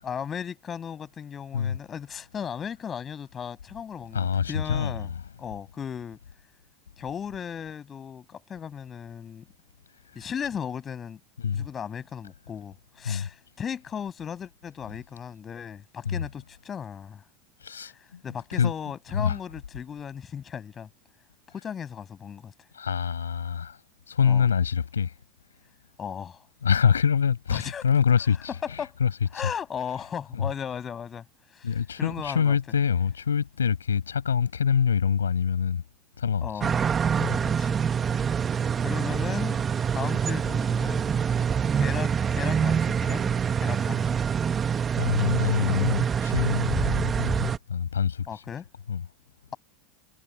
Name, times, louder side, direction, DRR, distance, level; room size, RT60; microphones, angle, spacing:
voice 1, 0.0-5.1 5.4-6.2 7.0-9.5 10.1-11.2 11.5-17.2 18.2-20.9 21.5-22.5 24.2-24.5 26.0-26.4 27.5-27.8 28.8-28.9 29.3-31.2 31.5-31.7 32.0-32.6 36.4-36.7 37.4-37.8 38.3-38.5 38.8-39.6 39.9-41.1 41.7-43.3 43.6-44.2 48.3-48.6, left 7 dB, 25° left, 7.7 m, -36 dB
voice 2, 4.1-5.2 10.1-10.3 11.4-11.7 13.0-13.3 16.0-16.2 17.6-18.2 18.5-18.7 19.1-19.4 22.7-23.8 24.1-25.1 26.6-29.4 30.3-30.5 31.6-35.8 36.2-36.6 37.2-37.4 45.0-48.4 48.9-49.0, left 7 dB, 75° left, 8.0 m, -25 dB
sound 1, 36.6-47.6, right 7 dB, 25° right, 2.1 m, -25 dB
figure-of-eight pair, 85°, 0 cm